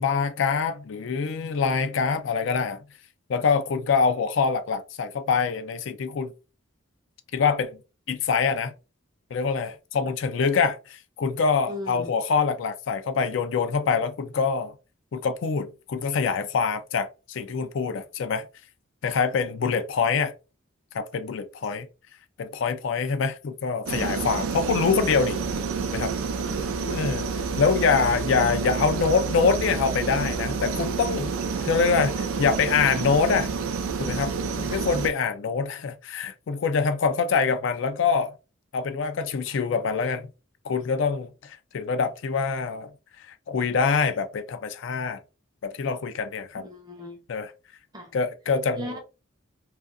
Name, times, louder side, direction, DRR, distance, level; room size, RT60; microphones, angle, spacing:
voice 1, 0.0-2.8 3.3-6.3 7.3-7.8 8.1-8.7 9.3-14.7 15.1-18.5 19.0-20.3 20.9-21.9 22.4-25.4 25.9-26.1 26.9-27.3 27.6-31.3 31.6-33.5 34.0-34.3 34.6-38.3 38.7-40.2 40.6-42.9 43.3-45.2 45.6-46.6 47.3-47.5 48.1-49.0, left 5 dB, 65° left, 0.3 m, -25 dB
voice 2, 11.7-12.1 26.5-26.9 34.7-34.9 39.5-39.6 46.6-47.2 47.9-48.1 48.8-49.0, left 1 dB, 20° right, 0.6 m, -37 dB
sound 1, 23.9-35.1, right 5 dB, 80° right, 0.4 m, -29 dB
2.3 x 2.3 x 2.5 m
head